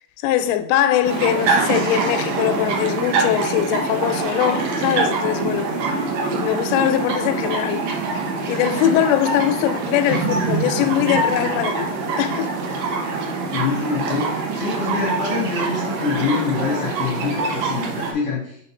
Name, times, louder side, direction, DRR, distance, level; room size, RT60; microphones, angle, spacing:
voice 1, 0.2-5.7 6.3-7.8 8.5-11.9 12.2-12.5, left 12 dB, 90° left, 2.8 m, -21 dB
sound 1, 1.0-18.1, right 3 dB, 80° right, 1.7 m, -24 dB
voice 2, 13.5-18.6, left 4 dB, 65° left, 1.4 m, -25 dB
6.5 x 4.2 x 4.4 m
omnidirectional pair, 5.0 m